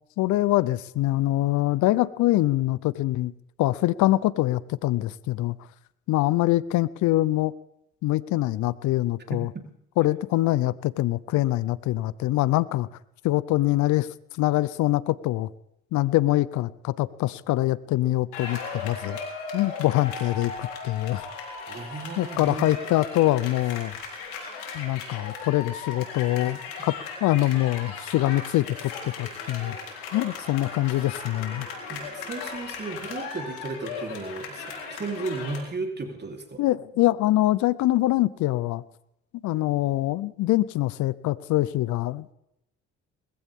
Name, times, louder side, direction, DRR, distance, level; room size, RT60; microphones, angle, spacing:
voice 1, 0.2-3.3 3.6-5.6 6.1-7.5 8.0-9.5 10.0-12.9 13.2-14.1 14.4-15.5 15.9-19.2 19.5-21.3 22.2-23.9 24.7-29.8 30.1-31.7 36.6-38.8 39.4-42.3, left 16 dB, 70° left, 19 dB, 0.7 m, -24 dB
voice 2, 9.3-9.6 21.7-22.8 26.4-26.5 31.9-36.6, right 3 dB, 35° right, 2 dB, 3.7 m, -34 dB
sound 1, 18.3-35.6, left 5 dB, 90° left, 3.8 m, -37 dB
20.5 x 15.5 x 3.7 m, 0.81 s
supercardioid pair, 65°, 31 cm